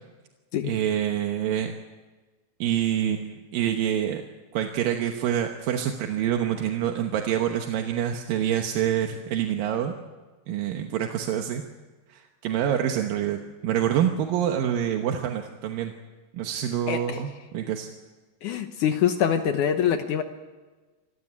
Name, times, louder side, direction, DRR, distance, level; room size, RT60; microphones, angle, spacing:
voice 1, 0.6-1.7 2.6-4.2 4.5-9.9 10.5-11.6 12.1-15.9 16.3-17.9, right 10 dB, 70° right, 4 dB, 2.5 m, -26 dB
voice 2, 16.9-17.2 18.4-20.2, left 9 dB, 75° left, 7 dB, 1.9 m, -24 dB
26.0 x 15.5 x 9.7 m, 1.3 s
omnidirectional pair, 4.9 m